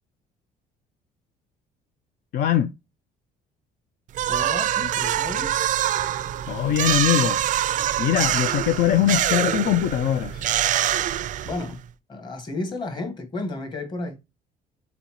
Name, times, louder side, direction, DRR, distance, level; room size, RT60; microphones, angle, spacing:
voice 1, 2.3-2.7 6.5-7.4 8.0-10.4, left 11 dB, 60° left, 0.5 m, -22 dB
sound 1, 4.1-11.8, right 11 dB, 50° right, 0.4 m, -25 dB
voice 2, 4.3-5.5 11.4-11.8 12.1-14.2, left 2 dB, 25° left, 1.4 m, -32 dB
4.1 x 3.9 x 2.9 m
cardioid pair, 110°, 17 cm